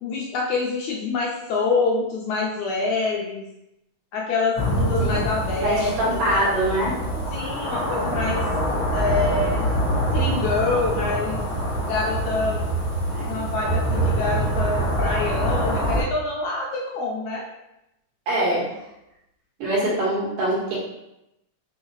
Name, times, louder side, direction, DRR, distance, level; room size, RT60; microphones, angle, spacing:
voice 1, 0.0-3.5 4.1-6.5 7.3-8.5 8.9-9.7 10.1-11.4 11.8-12.6 13.3-17.5, left 3 dB, 80° left, -3 dB, 1.7 m, -26 dB
sound 1, 4.5-16.0, right 1 dB, 50° left, 1.5 m, -25 dB
voice 2, 5.6-6.9 13.1-13.4 18.3-18.7 19.6-20.8, right 1 dB, 75° right, -6 dB, 2.8 m, -23 dB
5.5 x 2.7 x 2.9 m, 0.87 s
omnidirectional pair, 3.7 m